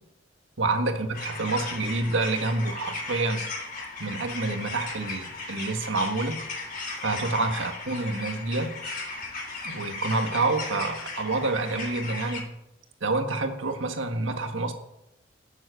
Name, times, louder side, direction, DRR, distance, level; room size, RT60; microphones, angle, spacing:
voice 1, 0.6-3.5 4.0-6.4 7.0-8.8 9.6-12.5 13.0-14.7, right 3 dB, 85° right, 5 dB, 1.7 m, -28 dB
sound 1, 1.1-12.4, left 3 dB, 50° left, 3.9 m, -36 dB
11.5 x 7.9 x 7.7 m, 0.85 s
head